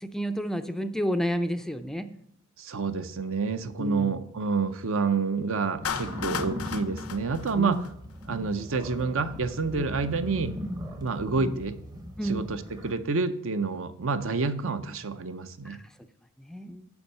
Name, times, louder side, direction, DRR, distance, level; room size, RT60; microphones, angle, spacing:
voice 1, 0.0-2.1 3.8-4.1 7.6-7.9 9.7-9.9 12.2-12.4 15.7-15.9 16.4-16.9, equal, ahead, 9 dB, 0.3 m, -30 dB
voice 2, 2.6-7.8 8.2-10.6 11.0-11.7 12.2-15.8, right 4 dB, 65° right, 10 dB, 0.6 m, -28 dB
Clapping, 5.8-8.2, left 7 dB, 85° left, 0.6 m, -35 dB
sound 1, 5.8-12.9, equal, 20° right, 0.7 m, -38 dB
7.0 x 5.5 x 6.6 m, 0.72 s
head